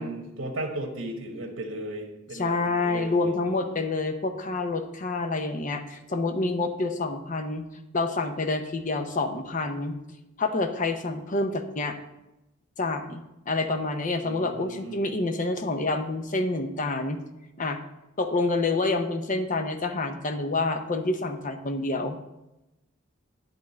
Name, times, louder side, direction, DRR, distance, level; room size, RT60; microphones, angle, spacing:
voice 1, 0.0-3.3 14.2-15.0, right 1 dB, 75° right, 1 dB, 1.4 m, -36 dB
voice 2, 2.3-7.6 7.9-10.0 10.4-12.0 12.8-17.2 17.6-17.8 18.2-22.2, left 3 dB, 40° left, 7 dB, 0.8 m, -28 dB
10.5 x 3.7 x 7.4 m, 0.93 s
head